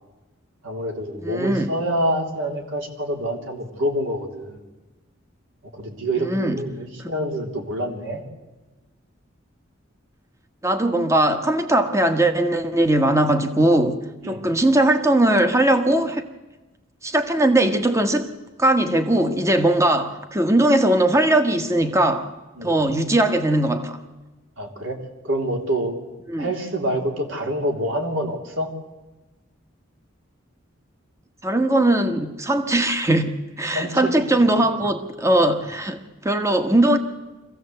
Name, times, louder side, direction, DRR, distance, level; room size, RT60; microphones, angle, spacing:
voice 1, 0.6-4.6 5.7-8.2 14.2-14.4 22.6-22.7 24.6-25.0 25.2-26.0 26.4-28.7 33.7-34.1 34.5-34.8, right 1 dB, 70° right, 2 dB, 3.4 m, -26 dB
voice 2, 1.2-1.7 6.2-6.6 7.0-7.1 10.6-14.0 14.2-16.2 17.0-18.3 18.6-22.3 22.6-24.0 26.3-26.5 31.4-37.0, right 1 dB, 15° right, 7 dB, 1.4 m, -20 dB
25.0 x 16.0 x 7.9 m, 1.2 s
head